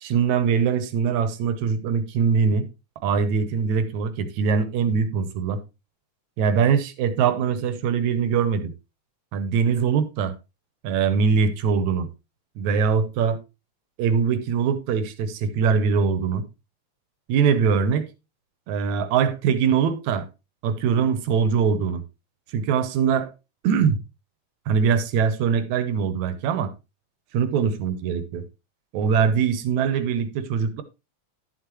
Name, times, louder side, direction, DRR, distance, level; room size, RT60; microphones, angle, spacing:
voice 1, 0.0-2.7 3.0-5.6 6.4-8.7 9.3-10.3 10.8-12.1 12.6-13.4 14.0-16.4 17.3-18.1 18.7-20.3 20.6-22.0 22.5-23.3 23.6-24.0 24.7-26.7 27.3-28.4 28.9-30.8, right 6 dB, 80° right, 2.3 m, -22 dB
11.5 x 7.6 x 3.1 m
omnidirectional pair, 3.3 m